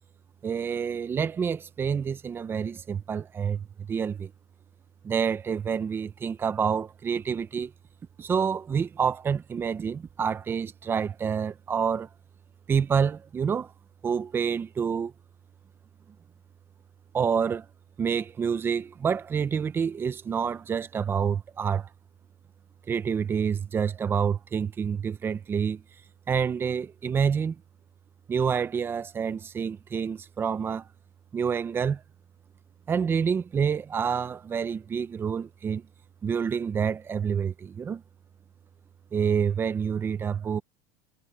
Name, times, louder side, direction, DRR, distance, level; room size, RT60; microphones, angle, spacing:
voice 1, 0.4-4.3 5.0-7.7 8.2-12.1 12.7-13.7 14.0-15.1 17.1-17.6 18.0-21.9 22.9-25.8 26.3-27.6 28.3-30.9 31.3-32.0 32.9-35.8 36.2-38.0 39.1-40.6, right 6 dB, 25° right, 1.2 m, -28 dB
supercardioid pair, 125°, 10 cm